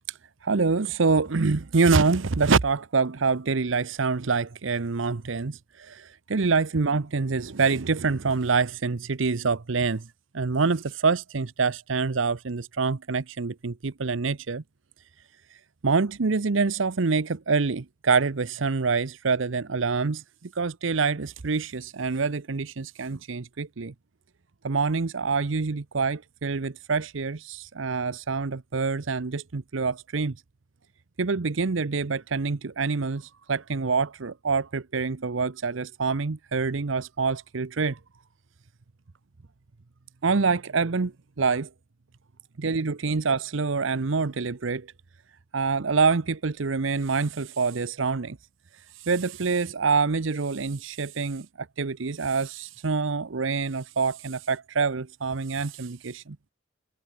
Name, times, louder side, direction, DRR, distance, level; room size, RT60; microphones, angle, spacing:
voice 1, 0.1-10.1 10.3-14.6 15.5-23.9 24.6-30.4 31.2-38.0 40.2-41.7 42.6-44.9 45.5-48.4 48.7-56.4, right 4 dB, 70° right, 0.8 m, -26 dB
head